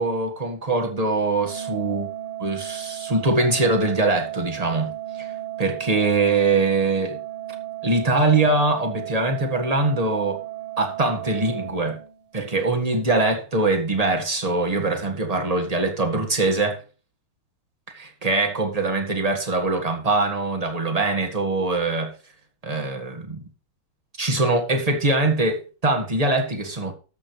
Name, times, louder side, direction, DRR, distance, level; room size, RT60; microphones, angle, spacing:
voice 1, 0.0-2.1 2.4-4.9 5.2-5.3 5.6-7.2 7.8-10.4 10.8-12.0 12.3-16.8 17.9-22.1 22.6-23.4 24.2-26.9, right 2 dB, 20° right, 1.5 m, -22 dB
Organ, 1.4-12.4, right 14 dB, 35° right, 0.5 m, -35 dB
13.0 x 7.6 x 3.2 m
omnidirectional pair, 2.3 m